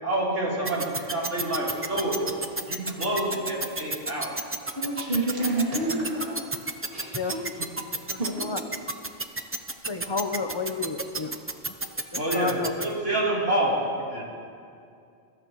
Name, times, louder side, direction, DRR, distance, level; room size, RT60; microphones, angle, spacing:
voice 1, 0.0-2.2 2.7-4.3 12.1-12.5 12.8-13.8 14.1-14.2, right 1 dB, 85° right, -6 dB, 3.8 m, -27 dB
sound 1, 0.6-12.8, right 2 dB, 20° right, 0.3 m, -30 dB
voice 2, 4.7-6.3 6.9-7.6 8.2-8.3, right 2 dB, 50° right, -5 dB, 2.4 m, -28 dB
voice 3, 7.1-7.5 8.1-8.6 9.9-11.4 12.1-12.8, left 4 dB, 30° left, 7 dB, 0.6 m, -31 dB
22.5 x 13.5 x 3.1 m, 2.4 s
omnidirectional pair, 1.2 m